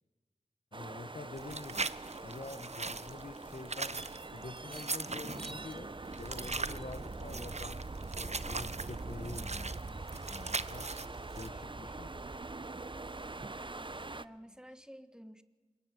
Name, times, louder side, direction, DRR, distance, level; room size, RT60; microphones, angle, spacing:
voice 1, 0.7-1.9 2.2-4.0 4.3-5.9 6.2-7.9 8.2-10.9 11.3-12.1, left 3 dB, 60° left, 11 dB, 1.7 m, -47 dB
sound 1, 0.7-14.3, right 3 dB, 35° right, 0.9 m, -43 dB
sound 2, 1.4-11.5, right 3 dB, 55° right, 1.1 m, -41 dB
voice 2, 13.6-15.4, equal, 5° right, 11 dB, 1.6 m, -52 dB
26.0 x 22.0 x 9.4 m, 1.3 s
wide cardioid pair, 45°, 14 cm